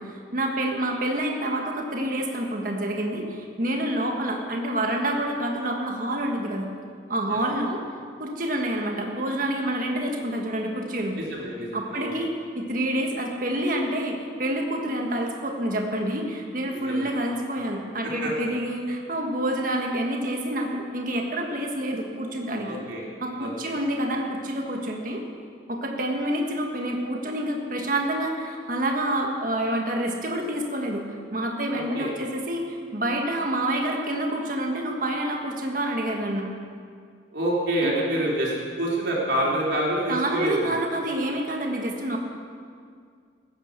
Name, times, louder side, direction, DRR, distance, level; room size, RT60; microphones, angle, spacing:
voice 1, 0.0-6.7 7.1-7.8 8.2-11.2 11.7-22.8 23.2-25.2 25.7-31.0 31.3-36.5 37.8-38.0 40.1-42.2, right 1 dB, 45° right, 1 dB, 1.7 m, -28 dB
voice 2, 11.2-12.1 16.7-17.1 18.0-18.3 22.6-23.0 23.4-23.8 31.7-32.1 37.3-40.7, right 1 dB, 65° right, -4 dB, 3.7 m, -27 dB
15.5 x 9.5 x 6.7 m, 2.1 s
head